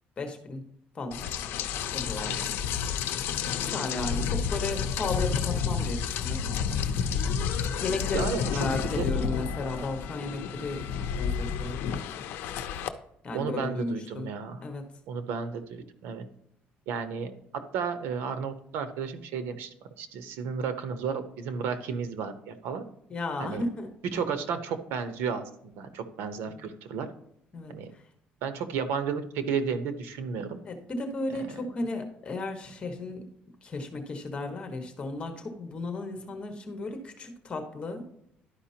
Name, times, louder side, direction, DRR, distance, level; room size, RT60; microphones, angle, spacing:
voice 1, 0.2-0.6 0.9-1.3 1.9-2.5 3.6-6.5 7.8-11.8 13.2-14.3 14.6-14.8 23.1-23.9 26.5-26.7 27.5-28.0 30.6-33.2 33.6-38.0, left 2 dB, 30° left, 5 dB, 1.5 m, -34 dB
Rain, 1.1-12.9, left 7 dB, 75° left, 0.7 m, -30 dB
voice 2, 13.3-14.6 15.1-16.2 16.9-22.8 23.4-23.6 24.1-25.4 25.7-27.1 27.7-27.9 28.4-30.6 31.4-31.5, right 6 dB, 90° right, 10 dB, 0.9 m, -33 dB
11.5 x 5.1 x 2.9 m, 0.77 s
cardioid pair, 135°, 4 cm